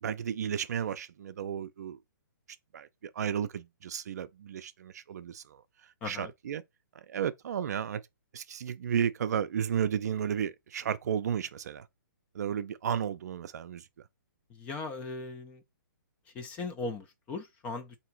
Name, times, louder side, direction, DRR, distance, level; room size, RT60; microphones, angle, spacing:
voice 1, 0.0-2.0 2.7-5.6 6.1-6.6 6.9-8.0 8.3-11.9 12.3-13.9, right 8 dB, 50° right, 0.5 m, -33 dB
voice 2, 14.5-15.6 16.3-18.0, left 3 dB, 10° left, 0.3 m, -38 dB
3.5 x 2.8 x 4.4 m
hypercardioid pair, 165°, 11 cm